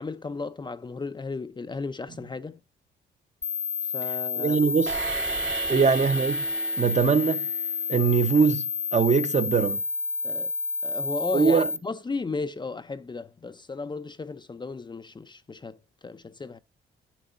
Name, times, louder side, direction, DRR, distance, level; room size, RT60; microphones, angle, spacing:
voice 1, 0.0-2.6 3.9-4.6 5.7-5.9 10.2-10.5 10.8-16.6, left 3 dB, 25° left, 0.7 m, -35 dB
sound 1, 3.4-11.8, left 4 dB, 45° left, 1.1 m, -30 dB
voice 2, 4.4-5.0 5.7-6.4 6.8-7.5 7.9-9.8 11.3-11.7, right 5 dB, 35° right, 1.0 m, -22 dB
sound 2, 4.9-8.0, right 8 dB, 75° right, 2.8 m, -36 dB
10.0 x 7.7 x 2.6 m
cardioid pair, 90°, 20 cm